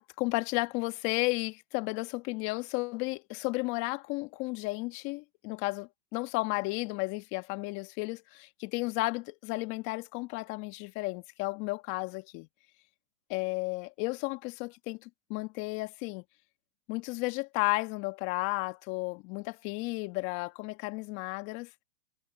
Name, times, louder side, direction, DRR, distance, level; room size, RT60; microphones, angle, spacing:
voice 1, 0.0-12.5 13.3-16.2 16.9-21.7, left 25 dB, 35° left, 1.8 m, -33 dB
hypercardioid pair, 135°, 35 cm